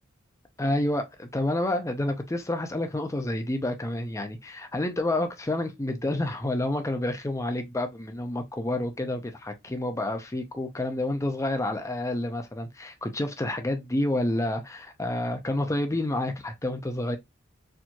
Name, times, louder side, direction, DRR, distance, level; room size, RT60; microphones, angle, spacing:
voice 1, 0.6-17.2, left 1 dB, 15° left, 0.6 m, -29 dB
4.3 x 2.5 x 2.9 m
head